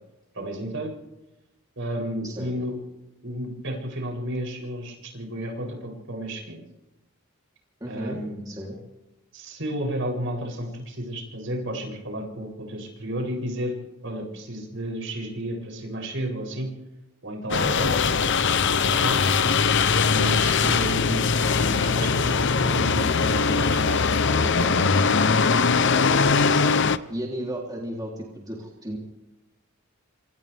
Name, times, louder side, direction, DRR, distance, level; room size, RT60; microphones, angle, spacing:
voice 1, 0.3-0.9 1.8-2.8 3.2-6.6 7.9-8.4 9.3-13.8 14.0-16.7 17.2-18.4 18.8-19.2 20.0-21.3 21.7-24.8, right 1 dB, 60° right, 0 dB, 8.0 m, -32 dB
voice 2, 7.8-8.2 8.4-8.7 17.6-17.9 26.5-29.0, equal, 15° right, -2 dB, 3.4 m, -34 dB
sound 1, 17.5-27.0, left 5 dB, 55° left, 0.8 m, -21 dB
27.5 x 27.0 x 3.6 m, 0.96 s
head